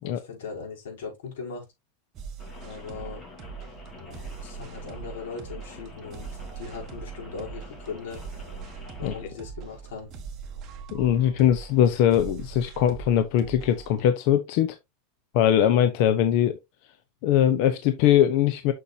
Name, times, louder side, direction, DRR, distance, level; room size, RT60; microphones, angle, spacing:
voice 1, 0.0-1.7 2.6-3.2 4.0-6.3 6.6-8.2 9.0-10.1, left 5 dB, 90° left, 5.4 m, -39 dB
sound 1, 2.1-14.0, right 6 dB, 30° right, 1.5 m, -41 dB
Rain, 2.4-9.2, left 4 dB, 25° left, 2.1 m, -47 dB
voice 2, 10.9-14.8 15.3-16.6 17.2-18.7, left 10 dB, 50° left, 0.8 m, -21 dB
7.0 x 6.4 x 2.7 m
supercardioid pair, 160°, 0 cm